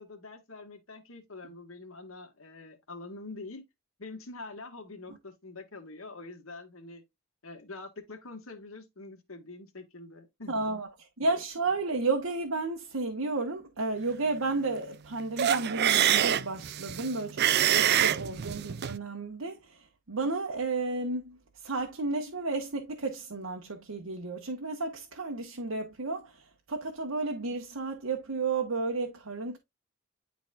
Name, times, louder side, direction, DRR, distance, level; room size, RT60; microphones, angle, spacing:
voice 1, 0.0-3.6 4.0-7.0 7.4-10.5, left 3 dB, 75° left, 1.7 m, -45 dB
voice 2, 10.5-10.9 11.2-21.4 21.6-26.3 26.7-29.6, right 3 dB, 80° right, 1.1 m, -32 dB
sound 1, 15.4-19.0, right 10 dB, 50° right, 0.4 m, -26 dB
10.5 x 4.1 x 2.4 m
head